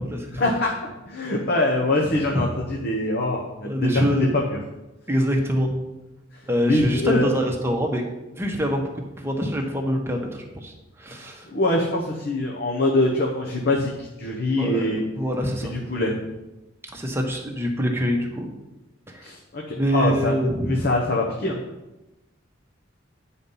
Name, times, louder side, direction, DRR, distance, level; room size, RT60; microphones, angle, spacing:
voice 1, 0.4-4.0 6.7-7.3 11.5-15.0 15.7-16.2 19.2-20.3 20.6-21.6, left 2 dB, 55° left, -1 dB, 0.9 m, -24 dB
voice 2, 2.1-2.4 3.6-4.3 5.1-5.7 6.5-8.0 8.4-8.8 9.2-11.5 14.6-15.7 16.9-18.5 19.1-19.2 19.7-20.9, equal, 15° right, 1 dB, 1.0 m, -25 dB
9.4 x 4.1 x 5.5 m, 1.0 s
head